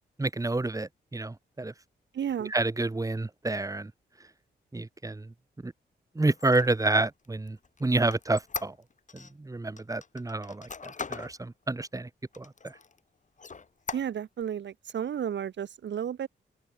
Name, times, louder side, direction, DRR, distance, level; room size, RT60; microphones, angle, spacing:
voice 1, 0.2-1.7 2.4-3.9 4.7-5.3 5.6-5.7 6.1-8.8 9.1-12.1 12.4-12.7, right 2 dB, 20° right, 2.5 m, -29 dB
voice 2, 2.1-2.5 13.9-16.3, right 9 dB, 80° right, 2.7 m, -32 dB
Squeak, 6.3-9.3 9.8-11.4 11.8-11.9 12.3-13.0 13.4-14.4, left 5 dB, 40° left, 7.7 m, -40 dB
open air
wide cardioid pair, 105°, 19 cm